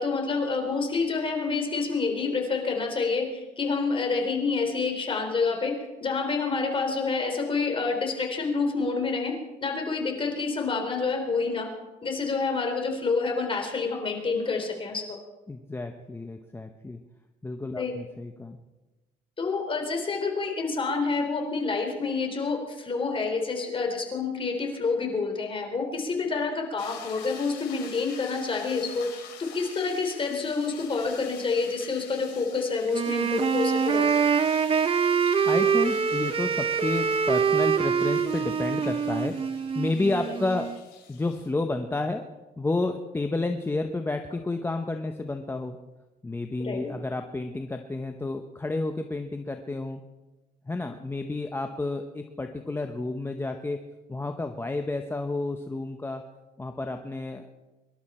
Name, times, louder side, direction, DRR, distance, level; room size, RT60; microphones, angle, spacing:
voice 1, 0.0-5.7 6.0-9.3 9.6-11.7 12.0-15.0 17.8-17.9 19.4-29.1 29.5-34.1 46.6-46.8, left 4 dB, 30° left, 3 dB, 3.5 m, -28 dB
voice 2, 15.5-17.0 17.4-18.6 35.4-39.3 39.7-40.7 41.1-42.2 42.6-45.8 46.2-50.0 50.7-53.8 54.1-56.2 56.6-57.5, left 2 dB, 15° left, 5 dB, 0.9 m, -30 dB
sound 1, 26.8-41.5, left 8 dB, 90° left, 3.7 m, -47 dB
Wind instrument woodwind instrument, 32.9-40.8, right 6 dB, 35° right, 0.8 m, -25 dB
24.5 x 12.0 x 4.3 m, 1.2 s
cardioid pair, 110°, 17 cm